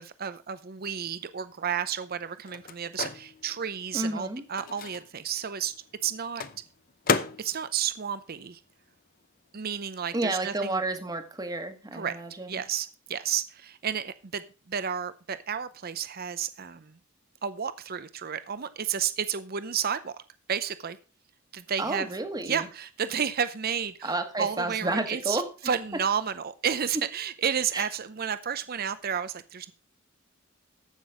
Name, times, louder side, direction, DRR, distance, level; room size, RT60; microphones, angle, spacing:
voice 1, 0.0-5.7 6.0-6.4 7.4-8.6 9.5-10.8 11.9-12.2 12.5-17.0 17.4-20.2 20.5-21.0 21.5-22.1 22.4-29.7, right 8 dB, 45° right, 13 dB, 0.6 m, -31 dB
Microwave oven, 1.1-9.3 9.5-11.4, left 5 dB, 45° left, 0.7 m, -36 dB
voice 2, 3.9-4.4 10.1-12.6 21.8-22.7 24.0-25.5 27.7-27.9, right 2 dB, 20° right, 8 dB, 1.4 m, -31 dB
14.5 x 6.0 x 4.9 m, 0.34 s
head